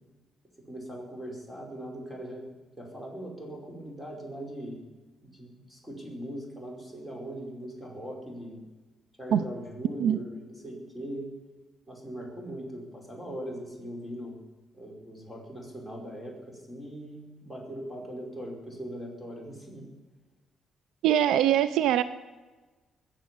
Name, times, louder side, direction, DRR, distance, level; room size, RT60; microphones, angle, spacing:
voice 1, 0.7-2.5 2.8-4.8 5.2-8.6 9.2-11.3 11.9-14.4 14.7-19.9, equal, 5° right, -1 dB, 5.3 m, -40 dB
voice 2, 21.0-22.0, right 10 dB, 85° right, 14 dB, 0.6 m, -22 dB
20.5 x 7.6 x 8.4 m, 1.2 s
cardioid pair, 90°, 0 cm